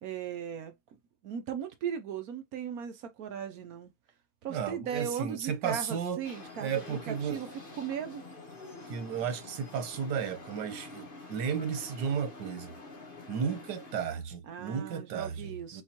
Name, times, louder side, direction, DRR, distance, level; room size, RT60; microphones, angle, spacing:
voice 1, 0.0-0.8 1.2-3.9 4.4-8.2 14.5-15.8, right 8 dB, 65° right, 1.1 m, -37 dB
voice 2, 4.5-6.2 6.6-7.4 8.9-12.7 13.3-15.8, right 7 dB, 85° right, 1.5 m, -34 dB
sound 1, 6.2-14.0, left 3 dB, 35° left, 1.4 m, -47 dB
4.2 x 3.9 x 2.9 m
omnidirectional pair, 1.8 m